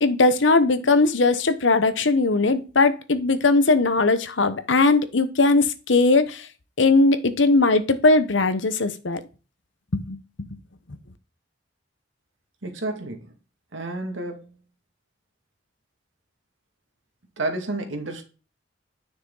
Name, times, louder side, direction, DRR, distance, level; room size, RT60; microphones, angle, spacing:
voice 1, 0.0-6.5 6.8-9.2 9.9-10.2, left 3 dB, 70° left, 1.0 m, -19 dB
voice 2, 12.6-13.2 13.7-14.6 17.4-18.2, right 2 dB, 80° right, 2.2 m, -30 dB
9.8 x 6.0 x 4.0 m
head